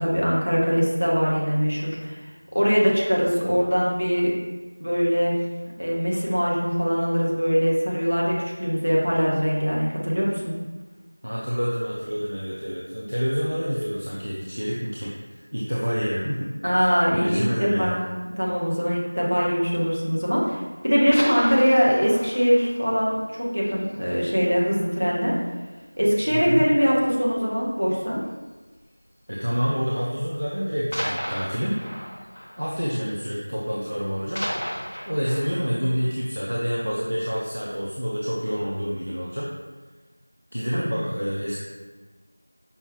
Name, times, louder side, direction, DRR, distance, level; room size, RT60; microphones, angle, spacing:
voice 1, 0.0-2.1 2.5-4.3 4.8-5.4 5.8-10.5 16.6-18.0 18.4-25.3 26.0-28.2 40.7-40.9, equal, 75° right, -5 dB, 1.2 m, -22 dB
voice 2, 11.2-16.9 17.1-18.1 26.3-26.7 29.3-31.8 32.6-34.5 35.1-39.5 40.5-41.6, equal, 55° right, -5 dB, 0.5 m, -28 dB
sound 1, 20.9-24.4 24.7-24.8 25.3-25.5 25.8-25.9 26.7-27.1 28.3-28.6 29.5-29.6 30.9-33.7 34.0-37.1 37.6-37.7, equal, 25° left, 0.4 m, -35 dB
5.2 x 2.3 x 3.0 m, 1.2 s
figure-of-eight pair, 180°, 0 cm